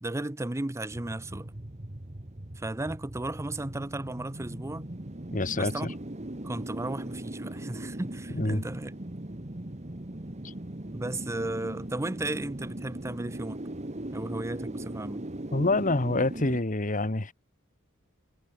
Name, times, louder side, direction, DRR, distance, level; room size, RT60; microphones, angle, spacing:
voice 1, 0.0-1.5 2.6-4.8 5.6-5.9 6.4-8.9 10.9-13.6 14.1-15.3, right 2 dB, 15° right, 0.6 m, -35 dB
sound 1, 0.9-16.6, right 1 dB, 30° right, 1.6 m, -39 dB
voice 2, 5.3-5.9 8.3-8.6 10.4-10.5 15.5-17.3, left 2 dB, 40° left, 1.5 m, -27 dB
head